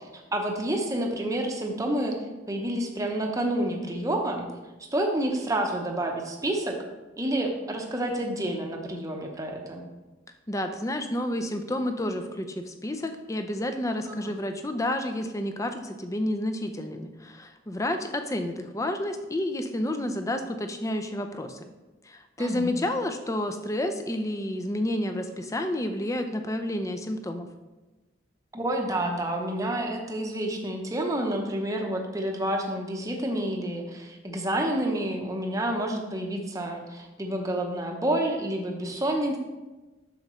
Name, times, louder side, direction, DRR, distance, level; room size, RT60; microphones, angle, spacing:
voice 1, 0.0-2.2 2.5-4.5 4.8-6.8 7.2-9.8 14.1-14.4 22.4-22.7 28.5-39.4, right 1 dB, 15° right, 2 dB, 0.7 m, -29 dB
voice 2, 10.5-21.6 22.1-27.5, left 1 dB, 15° left, 7 dB, 0.4 m, -30 dB
7.6 x 6.5 x 3.1 m, 1.2 s
head